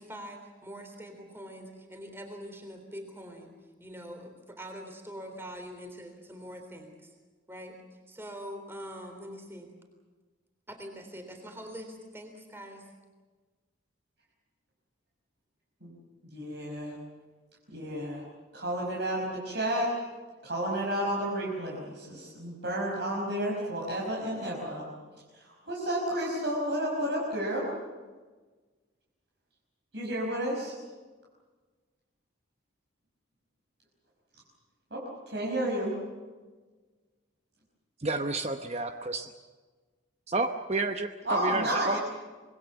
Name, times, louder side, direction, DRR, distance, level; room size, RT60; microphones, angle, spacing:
voice 1, 0.0-3.5 3.8-7.1 7.5-7.8 8.1-9.7 10.7-12.9, equal, 10° right, 4 dB, 3.6 m, -44 dB
voice 2, 16.3-17.0 17.7-18.2 18.5-19.9 20.4-24.9 25.4-27.7 29.9-30.7 34.9-35.9 41.3-42.0, right 1 dB, 60° right, -3 dB, 5.4 m, -31 dB
voice 3, 38.0-39.3 40.3-42.0, right 2 dB, 30° right, 6 dB, 0.9 m, -30 dB
25.5 x 21.5 x 7.1 m, 1.3 s
head